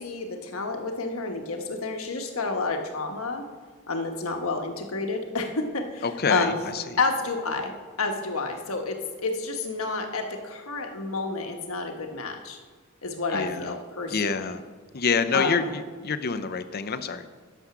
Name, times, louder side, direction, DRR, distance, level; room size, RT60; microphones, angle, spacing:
voice 1, 0.0-3.4 3.9-6.6 7.0-7.7 8.0-12.6 13.0-14.4 15.3-15.7, left 3 dB, 85° left, 4 dB, 1.3 m, -29 dB
voice 2, 6.0-7.0 13.3-13.8 14.1-14.6 14.9-17.3, left 5 dB, 45° left, 11 dB, 0.6 m, -27 dB
11.5 x 7.2 x 6.0 m, 1.5 s
head